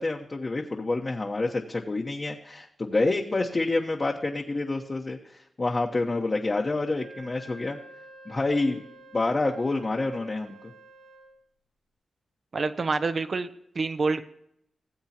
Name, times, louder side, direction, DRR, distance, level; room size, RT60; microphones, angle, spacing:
voice 1, 0.0-7.8 8.3-8.8 9.1-10.6, left 2 dB, 35° left, 0 dB, 1.1 m, -28 dB
Wind instrument woodwind instrument, 6.9-11.3, right 2 dB, 85° right, 5.1 m, -49 dB
voice 2, 12.5-13.5 13.7-14.2, right 4 dB, 50° right, 10 dB, 0.8 m, -27 dB
17.5 x 7.9 x 2.8 m, 0.72 s
cardioid pair, 85°, 0 cm